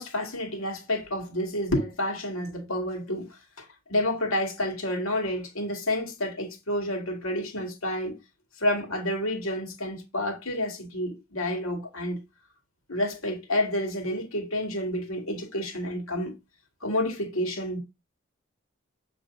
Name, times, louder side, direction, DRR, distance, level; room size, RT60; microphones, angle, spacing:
voice 1, 0.0-3.3 3.6-3.7 3.9-8.2 8.6-12.2 12.9-16.4 16.8-17.8, left 1 dB, 85° left, 2.1 m, -29 dB
7.3 x 3.3 x 5.1 m
head